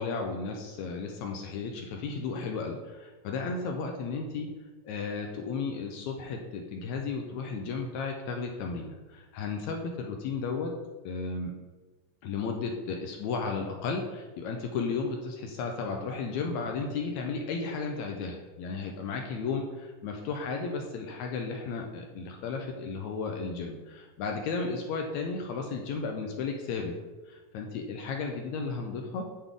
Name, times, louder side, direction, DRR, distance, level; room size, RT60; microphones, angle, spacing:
voice 1, 0.0-4.5 4.8-10.7 11.0-11.5 12.2-26.9 27.3-29.2, left 4 dB, 80° left, 2 dB, 1.7 m, -34 dB
9.9 x 3.5 x 3.7 m, 1.2 s
omnidirectional pair, 3.8 m